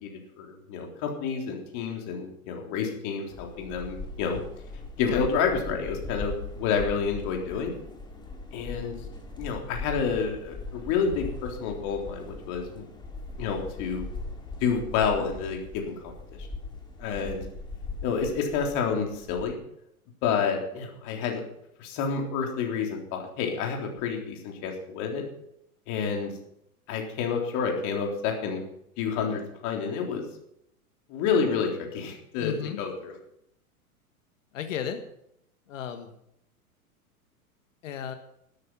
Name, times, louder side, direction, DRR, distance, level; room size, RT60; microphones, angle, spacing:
voice 1, 0.0-4.4 5.0-7.7 8.5-9.0 9.4-12.9 13.4-14.1 14.6-16.1 16.4-16.5 17.0-17.5 18.0-19.6 20.2-21.4 21.8-25.3 25.9-26.3 26.9-28.6 29.0-30.2 31.1-33.1, left 6 dB, 40° left, 2 dB, 3.7 m, -29 dB
sound 1, 3.3-19.5, left 2 dB, 10° left, 2.3 m, -40 dB
voice 2, 32.4-32.8 34.5-35.0 35.7-36.1 37.8-38.1, left 8 dB, 60° left, 7 dB, 1.6 m, -34 dB
13.0 x 12.0 x 5.7 m, 0.76 s
figure-of-eight pair, 105°, 43 cm